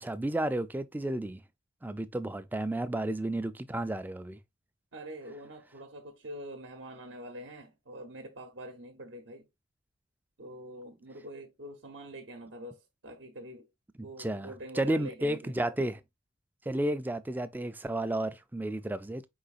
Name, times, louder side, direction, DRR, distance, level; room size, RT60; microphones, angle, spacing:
voice 1, 0.0-1.4 1.8-4.4 14.2-16.0 16.7-19.3, right 1 dB, 10° right, 0.3 m, -32 dB
voice 2, 4.9-9.5 10.4-13.7 14.0-15.5, right 1 dB, 60° right, 0.7 m, -45 dB
4.7 x 3.9 x 2.4 m
head